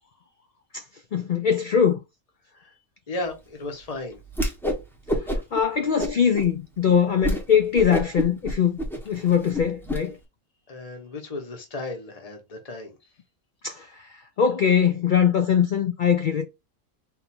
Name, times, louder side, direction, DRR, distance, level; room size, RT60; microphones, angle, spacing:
voice 1, 1.1-2.0 5.5-8.8 9.1-10.2 13.6-14.1 14.4-16.5, left 7 dB, 75° left, 0.4 m, -21 dB
voice 2, 3.1-4.2 10.7-13.0, left 2 dB, 30° left, 1.1 m, -35 dB
Whoosh swoosh swish, 4.3-4.8 5.1-5.6 6.0-6.5 6.9-7.0 7.2-7.4 7.7-10.0, equal, ahead, 1.0 m, -27 dB
4.0 x 2.6 x 4.2 m
omnidirectional pair, 1.4 m